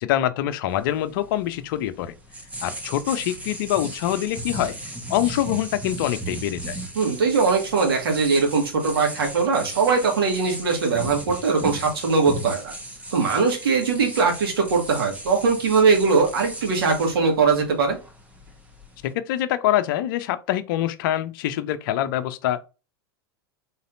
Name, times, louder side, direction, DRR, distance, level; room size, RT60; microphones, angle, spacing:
voice 1, 0.0-2.1 2.6-4.7 5.1-6.8 19.0-22.6, left 12 dB, 60° left, 0.6 m, -25 dB
sound 1, 0.7-19.1, right 1 dB, 10° right, 1.2 m, -37 dB
voice 2, 7.0-12.7 13.1-18.0, right 4 dB, 75° right, 1.8 m, -21 dB
4.1 x 3.9 x 2.6 m
hypercardioid pair, 95°, 12 cm